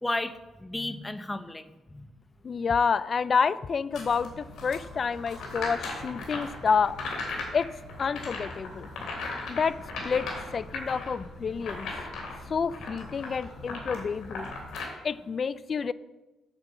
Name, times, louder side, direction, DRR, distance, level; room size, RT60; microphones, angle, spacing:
voice 1, 0.0-2.1, left 2 dB, 15° left, 11 dB, 0.7 m, -34 dB
voice 2, 2.4-7.0 7.5-7.7 8.0-8.9 9.5-9.8 10.0-11.9 12.5-14.5 15.0-15.9, left 5 dB, 45° left, 18 dB, 0.4 m, -28 dB
sound 1, 3.9-14.8, left 3 dB, 75° left, 3.0 m, -38 dB
9.0 x 5.5 x 7.2 m, 1.1 s
cardioid pair, 90°, 0 cm